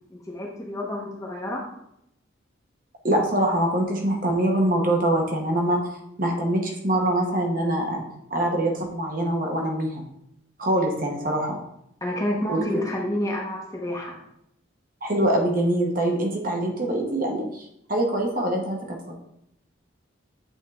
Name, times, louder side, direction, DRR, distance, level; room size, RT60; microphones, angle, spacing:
voice 1, 0.1-1.6 12.0-14.2, left 1 dB, 15° left, -2 dB, 1.1 m, -29 dB
voice 2, 3.0-5.8 6.2-8.0 8.3-10.0 10.6-11.6 12.5-12.8 15.0-18.8, right 1 dB, 45° right, 0 dB, 1.1 m, -24 dB
8.2 x 3.7 x 3.7 m, 0.76 s
head